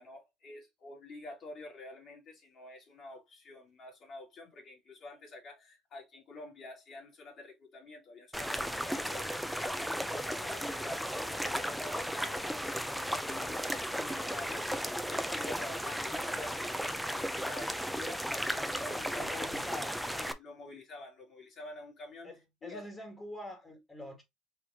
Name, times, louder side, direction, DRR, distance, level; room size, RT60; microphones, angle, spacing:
voice 1, 0.0-19.4 20.2-22.3 22.6-22.8, left 2 dB, 55° left, 2.2 m, -48 dB
sound 1, 8.3-20.3, equal, ahead, 0.6 m, -35 dB
voice 2, 19.1-20.0 22.2-24.2, left 1 dB, 25° left, 1.7 m, -45 dB
4.6 x 2.8 x 3.6 m
supercardioid pair, 85°, 0 cm